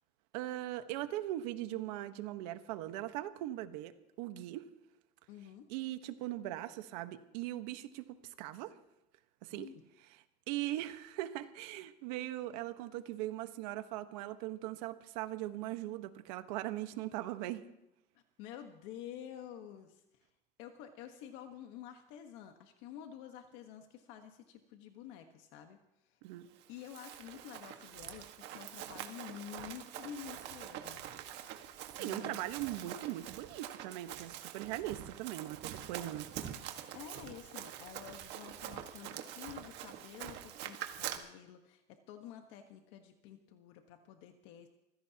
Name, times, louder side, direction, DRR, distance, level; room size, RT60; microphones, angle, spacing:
voice 1, 0.3-4.7 5.7-8.8 9.4-9.7 10.5-17.6 26.2-26.5 32.0-36.3, right 14 dB, 80° right, 9 dB, 1.3 m, -40 dB
voice 2, 5.3-5.7 9.5-9.8 18.4-20.3 20.6-26.2 26.7-31.0 32.0-32.4 36.9-44.7, left 10 dB, 70° left, 5 dB, 1.4 m, -50 dB
Run, 26.6-41.2, right 11 dB, 60° right, 1.7 m, -45 dB
24.5 x 16.0 x 2.9 m, 0.89 s
cardioid pair, 135°, 20 cm